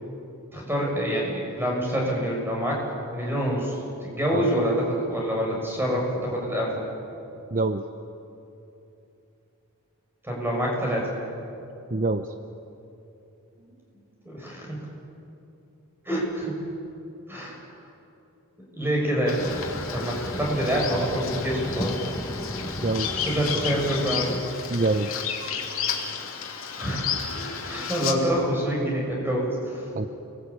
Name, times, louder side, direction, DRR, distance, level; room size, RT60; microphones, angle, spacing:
voice 1, 0.5-2.8 3.1-6.8 10.2-11.1 13.6-13.7 14.2-14.8 16.0-16.5 17.3-17.6 18.7-19.5 19.9-22.0 23.2-24.4 26.8-27.1 27.6-29.9, equal, 10° right, -2 dB, 7.0 m, -26 dB
voice 2, 7.5-7.8 11.9-12.3 22.8-23.1 24.7-25.2 29.9-30.1, right 2 dB, 40° right, 8 dB, 0.8 m, -25 dB
Bird vocalization bird call bird song, 19.3-28.1, left 7 dB, 70° left, 3.1 m, -32 dB
sound 1, 19.4-24.4, equal, 15° left, 1.6 m, -34 dB
30.0 x 21.0 x 8.7 m, 2.8 s
head